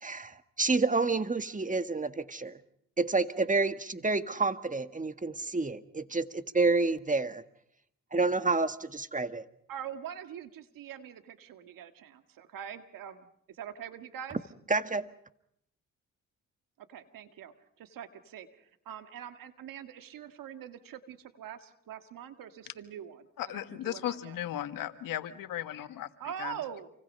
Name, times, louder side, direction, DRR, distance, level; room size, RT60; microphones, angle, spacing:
voice 1, 0.0-2.6 3.0-7.4 8.1-9.4 14.7-15.1, right 3 dB, 25° right, 10 dB, 1.6 m, -29 dB
voice 2, 9.7-14.4 16.8-24.4 26.2-26.9, right 9 dB, 85° right, 8 dB, 1.8 m, -44 dB
voice 3, 23.4-26.1 26.4-26.5, left 12 dB, 85° left, 10 dB, 1.5 m, -36 dB
28.5 x 25.0 x 5.5 m, 0.73 s
supercardioid pair, 55°, 33 cm